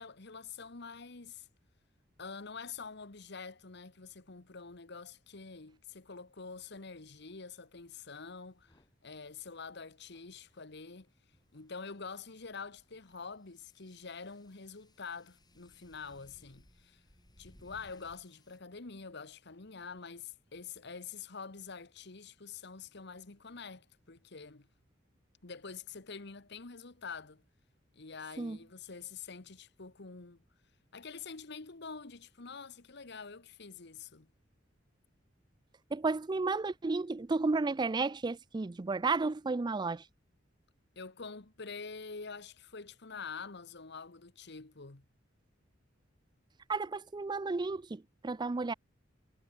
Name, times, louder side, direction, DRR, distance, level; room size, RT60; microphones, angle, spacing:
voice 1, 0.0-1.5 2.2-8.7 9.0-11.1 11.5-17.0 17.4-24.7 25.4-27.4 27.9-30.4 30.9-34.3 40.9-45.1, left 5 dB, 65° left, 1.4 m, -46 dB
sound 1, 6.6-6.8 8.6-18.6, left 1 dB, 20° left, 4.6 m, -65 dB
voice 2, 35.9-40.0 46.7-48.7, right 3 dB, 25° right, 0.4 m, -32 dB
head